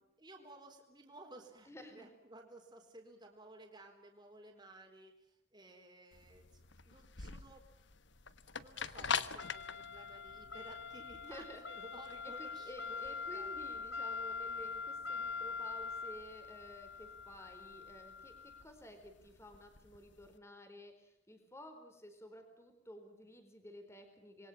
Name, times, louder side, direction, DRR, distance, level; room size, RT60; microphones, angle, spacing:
voice 1, 0.0-7.6 8.5-13.6, right 2 dB, 20° right, 1 dB, 4.1 m, -56 dB
voice 2, 1.6-2.1 11.2-11.6 12.4-24.5, equal, 15° left, 7 dB, 4.3 m, -53 dB
sound 1, 6.1-20.2, left 5 dB, 60° left, 1.2 m, -42 dB
27.0 x 22.5 x 7.3 m, 0.82 s
head